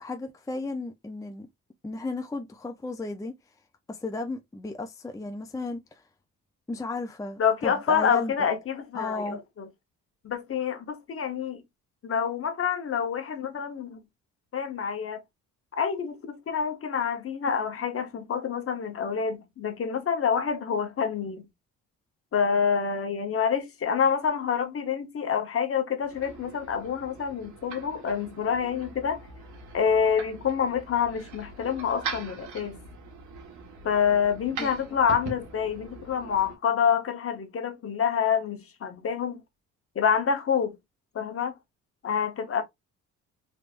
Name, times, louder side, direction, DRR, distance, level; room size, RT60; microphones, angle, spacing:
voice 1, 0.0-1.5 1.8-3.3 3.9-6.0 6.7-8.3 8.9-9.4 34.6-34.7, left 3 dB, 10° left, 0.5 m, -34 dB
voice 2, 7.4-9.7 10.2-11.6 12.0-14.0 14.5-15.2 15.7-21.5 22.3-29.3 29.7-32.8 33.8-39.4 39.9-40.8 41.1-41.6 42.0-42.6, left 7 dB, 45° left, 1.0 m, -27 dB
sound 1, 26.0-36.5, right 4 dB, 75° right, 1.4 m, -42 dB
3.5 x 3.1 x 2.4 m
cardioid pair, 90°, 30 cm